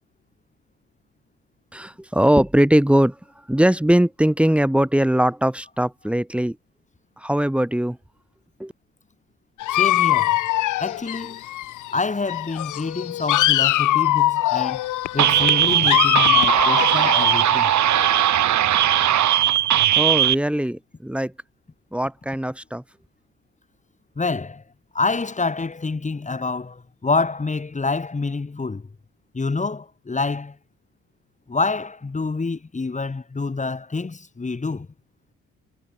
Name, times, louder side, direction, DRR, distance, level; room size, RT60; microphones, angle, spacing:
voice 1, 1.7-3.2 3.5-6.6 7.2-8.0 8.6-8.7 19.9-21.3 21.9-22.8, right 1 dB, 5° right, 7.9 m, -20 dB
Dog, 9.6-12.0 12.3-18.2, left 15 dB, 80° left, 1.2 m, -22 dB
voice 2, 9.7-10.4 10.8-11.4 11.9-14.9 15.1-17.7 24.2-24.6 24.9-28.9 29.3-30.6 31.5-34.9, left 3 dB, 25° left, 3.6 m, -27 dB
sound 1, 15.2-20.3, right 12 dB, 70° right, 2.1 m, -18 dB
cardioid pair, 90°, 30 cm